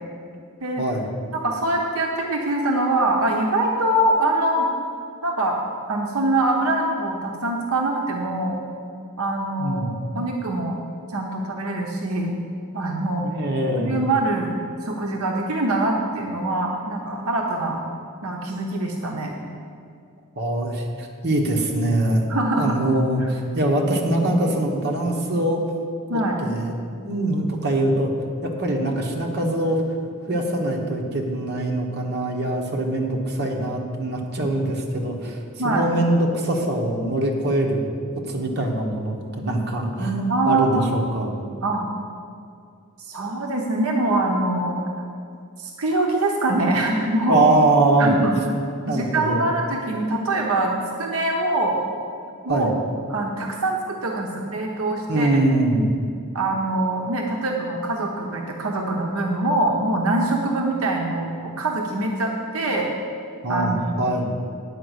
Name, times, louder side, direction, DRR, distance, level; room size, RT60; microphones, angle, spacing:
voice 1, 0.8-1.1 9.6-10.0 13.2-14.0 20.3-25.6 26.1-26.7 27.0-28.1 28.4-29.8 30.3-35.4 35.6-37.9 38.3-41.3 47.3-48.1 48.9-49.4 52.5-52.7 55.1-55.9 63.4-64.3, right 1 dB, 50° right, 0 dB, 1.3 m, -23 dB
voice 2, 1.3-4.7 5.2-5.6 5.9-8.6 9.2-9.8 10.1-10.8 11.1-12.4 12.7-13.2 13.8-14.5 14.8-17.8 18.2-19.3 22.3-22.8 23.2-23.3 26.1-26.4 35.6-35.9 39.8-39.9 40.3-40.9 41.6-41.8 43.0-44.8 45.6-47.5 48.0-48.3 48.9-51.8 52.4-52.8 53.1-55.4 56.3-62.9 63.5-64.1, right 2 dB, 75° right, 0 dB, 0.9 m, -24 dB
9.9 x 5.2 x 8.1 m, 2.4 s
head